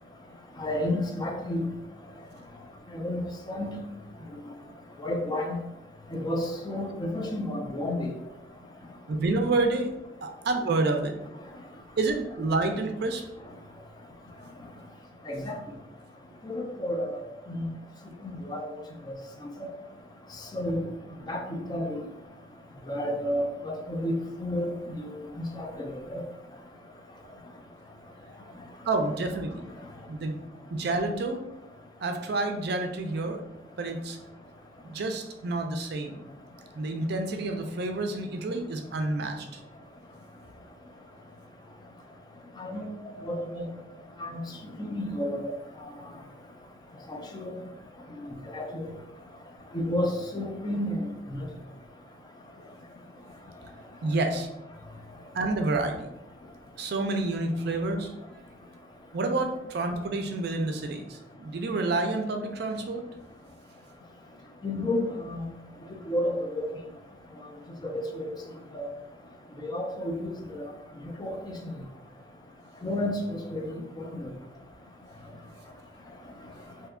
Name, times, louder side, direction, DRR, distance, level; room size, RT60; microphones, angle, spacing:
voice 1, 0.6-1.6 2.9-3.2 3.5-3.7 5.0-5.6 6.1-8.1 15.3-15.6 16.4-17.2 17.5-17.7 18.4-18.6 19.6-19.7 20.5-20.9 21.3-21.4 21.7-22.1 22.9-24.7 25.4-26.2 42.6-42.8 43.3-43.6 44.2-44.4 44.8-45.4 47.1-47.6 48.5-48.9 49.7-51.0 64.6-65.4 66.1-66.7 67.8-68.3 68.7-68.9 69.6-70.3 71.2-71.6 72.8-74.3, left 1 dB, 25° left, 2 dB, 0.4 m, -31 dB
voice 2, 9.1-9.9 10.2-11.2 12.0-13.2 28.8-29.7 30.1-30.4 30.7-31.4 32.0-33.4 33.8-34.2 34.8-36.2 36.7-39.6 42.7-42.8 43.1-43.7 54.0-54.5 55.3-56.1 56.8-58.1 59.1-63.0, right 2 dB, 60° right, 5 dB, 0.4 m, -29 dB
2.8 x 2.3 x 3.5 m, 0.89 s
head